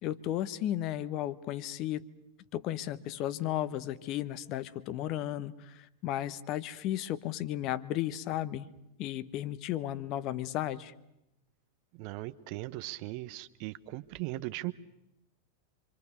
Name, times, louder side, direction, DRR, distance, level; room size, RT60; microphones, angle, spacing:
voice 1, 0.0-2.0 2.5-8.7 9.0-10.9, left 12 dB, 40° left, 15 dB, 1.1 m, -34 dB
voice 2, 12.0-14.7, right 19 dB, 45° right, 15 dB, 1.0 m, -38 dB
26.5 x 25.0 x 6.7 m, 0.87 s
figure-of-eight pair, 90°, 0 cm